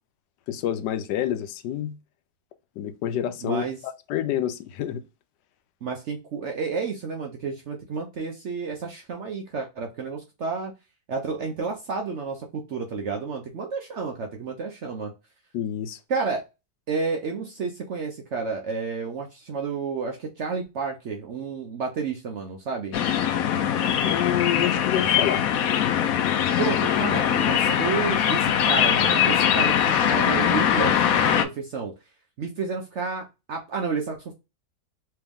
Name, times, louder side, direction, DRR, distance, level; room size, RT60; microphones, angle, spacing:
voice 1, 0.5-1.9 2.8-5.0 15.5-16.0 24.0-25.4, left 11 dB, 85° left, 1.2 m, -28 dB
voice 2, 3.4-3.8 5.8-10.7 11.1-15.1 16.1-16.4 16.9-23.0 26.6-31.9 32.4-34.3, right 5 dB, 65° right, 0.7 m, -31 dB
sound 1, 22.9-31.4, left 9 dB, 70° left, 0.9 m, -22 dB
3.3 x 3.0 x 3.5 m
omnidirectional pair, 1.8 m